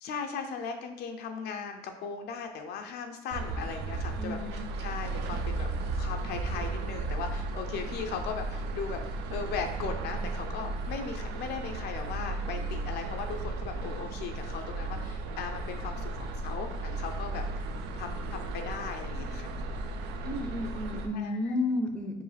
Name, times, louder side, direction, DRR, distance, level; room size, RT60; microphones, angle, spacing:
voice 1, 0.0-9.0 9.3-17.4 18.0-19.6 21.1-21.6, left 5 dB, 70° left, 4 dB, 0.5 m, -38 dB
sound 1, 3.3-21.1, right 2 dB, 85° right, 0.4 m, -35 dB
voice 2, 4.2-4.7 20.2-22.2, left 2 dB, 5° left, 3 dB, 0.5 m, -32 dB
4.6 x 2.5 x 3.3 m, 0.88 s
cardioid pair, 110°, 17 cm